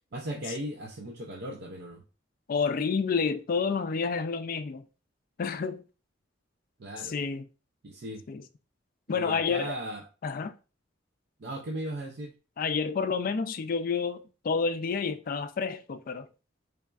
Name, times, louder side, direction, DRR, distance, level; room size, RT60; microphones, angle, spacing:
voice 1, 0.1-2.0 6.8-7.1 7.8-8.2 9.1-10.0 11.4-12.3, right 1 dB, 55° right, 0.5 m, -37 dB
voice 2, 2.5-4.8 5.4-5.8 7.0-7.5 8.3-8.4 9.1-9.7 10.2-10.5 12.6-16.3, left 5 dB, 45° left, 0.3 m, -29 dB
4.0 x 3.4 x 2.4 m
head